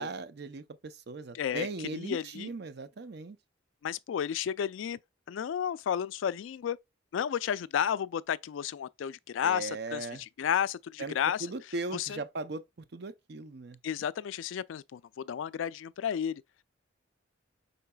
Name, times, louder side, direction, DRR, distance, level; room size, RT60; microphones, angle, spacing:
voice 1, 0.0-3.4 9.4-10.2 11.0-11.1 11.4-12.6 12.9-13.8, right 3 dB, 60° right, 0.5 m, -38 dB
voice 2, 1.3-2.5 3.8-5.0 5.3-6.8 7.1-11.5 11.9-12.2 13.8-16.4, left 8 dB, 80° left, 0.3 m, -32 dB
5.6 x 3.9 x 2.2 m
head